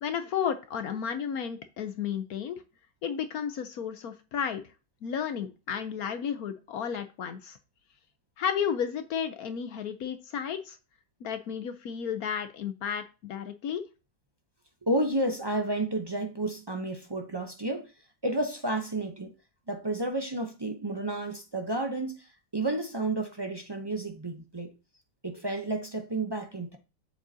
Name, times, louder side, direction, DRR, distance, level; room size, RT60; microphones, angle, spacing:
voice 1, 0.0-2.6 3.0-4.6 5.0-7.6 8.4-10.8 11.2-13.8, left 8 dB, 65° left, 1.1 m, -33 dB
voice 2, 14.8-17.9 18.2-19.3 19.7-24.7 25.2-26.8, right 2 dB, 35° right, 0.3 m, -31 dB
8.2 x 7.6 x 2.8 m
omnidirectional pair, 1.8 m